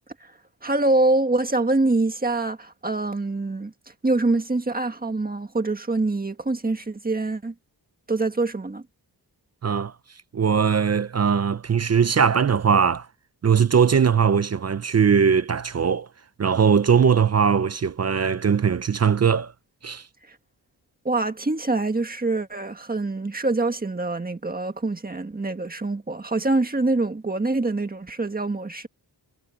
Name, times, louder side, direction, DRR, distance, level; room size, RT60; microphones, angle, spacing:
voice 1, 0.6-3.7 4.0-7.5 8.1-8.8 21.0-28.9, right 2 dB, 20° right, 1.7 m, -25 dB
voice 2, 9.6-9.9 10.3-13.1 13.4-16.1 16.4-19.5 19.8-20.0, right 7 dB, 40° right, 0.5 m, -20 dB
wide cardioid pair, 170°, 41 cm